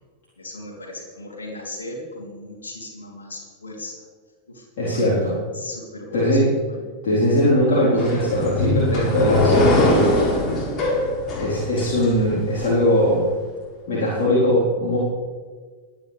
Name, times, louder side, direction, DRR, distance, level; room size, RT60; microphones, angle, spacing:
voice 1, 0.4-4.0 4.5-6.4 6.7-6.8, left 1 dB, 75° left, -2 dB, 3.4 m, -37 dB
voice 2, 4.8-5.4 6.1-6.5 7.0-10.1 11.4-13.3 13.9-15.0, equal, 55° left, -8 dB, 4.2 m, -20 dB
sound 1, 8.0-12.7, left 1 dB, 30° left, 4.0 m, -21 dB
22.0 x 9.7 x 3.5 m, 1.5 s
figure-of-eight pair, 90°, 0 cm